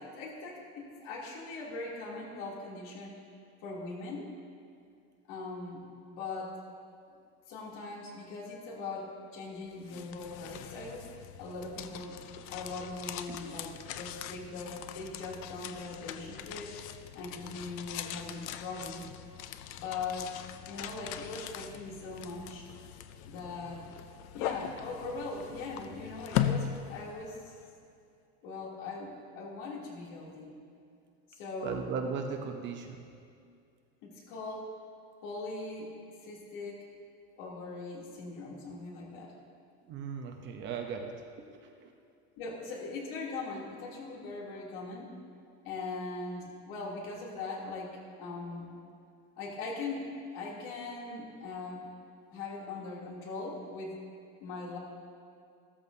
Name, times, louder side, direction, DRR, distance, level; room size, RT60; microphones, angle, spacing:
voice 1, 0.0-3.1 3.6-4.3 5.3-5.8 6.1-6.6 7.5-12.2 12.5-16.8 17.1-19.1 19.7-22.7 23.3-23.9 24.3-27.5 28.4-30.5 31.3-31.8 34.0-34.7 35.2-35.9 36.2-36.9 37.4-39.3 42.4-45.1 45.6-48.8 49.4-51.9 52.3-53.9 54.4-54.8, left 3 dB, 60° left, -4 dB, 3.0 m, -40 dB
sound 1, 9.6-27.6, left 10 dB, 40° left, 0.4 m, -40 dB
voice 2, 31.6-33.1 39.9-41.9, right 5 dB, 35° right, 3 dB, 0.8 m, -37 dB
14.5 x 13.5 x 2.8 m, 2.4 s
cardioid pair, 175°, 33 cm